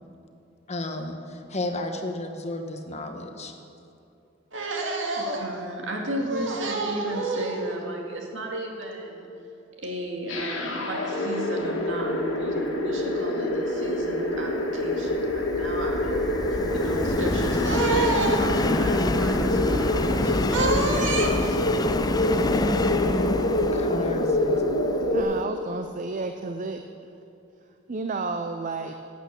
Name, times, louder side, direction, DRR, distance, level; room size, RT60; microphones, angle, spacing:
voice 1, 0.7-3.5 23.7-24.6, left 2 dB, 35° left, 5 dB, 1.1 m, -33 dB
voice 2, 4.5-9.3 9.8-16.3 16.7-21.6, right 2 dB, 70° right, 0 dB, 2.2 m, -30 dB
sound 1, 10.3-25.2, left 1 dB, 80° left, 1.8 m, -26 dB
Subway metro underground, 14.1-25.4, left 2 dB, 20° left, 0.5 m, -28 dB
voice 3, 25.1-26.8 27.9-28.9, right 3 dB, 40° right, 7 dB, 0.6 m, -31 dB
12.0 x 8.6 x 7.6 m, 2.7 s
head